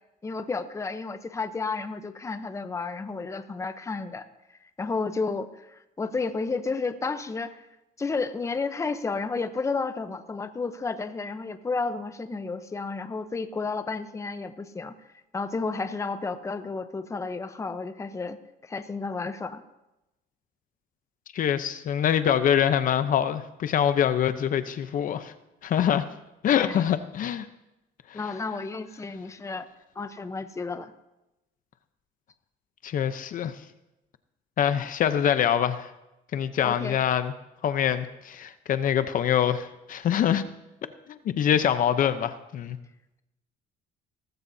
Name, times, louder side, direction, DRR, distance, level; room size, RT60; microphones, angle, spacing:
voice 1, 0.2-4.3 4.8-7.6 8.0-14.9 15.3-18.4 18.6-19.6 26.6-26.8 28.1-29.7 30.0-30.9 36.6-37.0, left 4 dB, 15° left, 10 dB, 0.8 m, -32 dB
voice 2, 21.3-25.3 25.6-26.1 26.4-27.5 28.1-28.2 32.8-33.5 34.6-35.9 36.3-37.3 37.6-40.4 41.1-42.8, left 9 dB, 55° left, 11 dB, 0.7 m, -24 dB
18.0 x 15.0 x 2.7 m, 0.95 s
cardioid pair, 110°, 17 cm